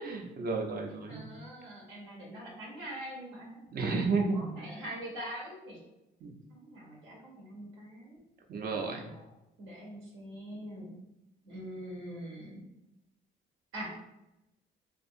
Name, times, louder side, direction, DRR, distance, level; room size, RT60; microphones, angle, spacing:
voice 1, 0.0-1.3 3.7-4.5 6.2-6.3 8.5-9.0, right 4 dB, 50° right, 1 dB, 0.5 m, -32 dB
voice 2, 1.1-3.9 4.3-5.8 6.5-8.2 9.0-9.3 9.6-11.0 11.4-12.6 13.7-13.9, right 1 dB, 90° right, -3 dB, 1.0 m, -43 dB
2.5 x 2.3 x 2.6 m, 0.92 s
cardioid pair, 90°, 20 cm